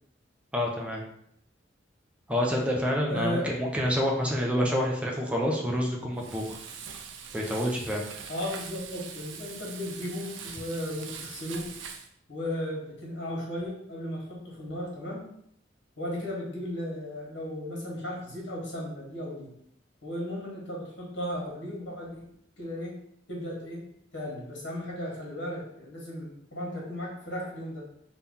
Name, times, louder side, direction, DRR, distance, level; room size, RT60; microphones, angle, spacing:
voice 1, 0.5-1.0 2.3-6.6 7.3-8.0, equal, 5° right, -1 dB, 0.5 m, -28 dB
voice 2, 3.1-3.5 8.3-11.7 12.3-15.2 16.0-19.5 20.0-22.2 22.6-23.0 23.3-23.8 24.1-27.8, left 1 dB, 70° left, -4 dB, 1.2 m, -35 dB
Frying (food), 6.2-12.1, right 6 dB, 80° right, 0.4 m, -42 dB
2.7 x 2.3 x 3.6 m, 0.71 s
head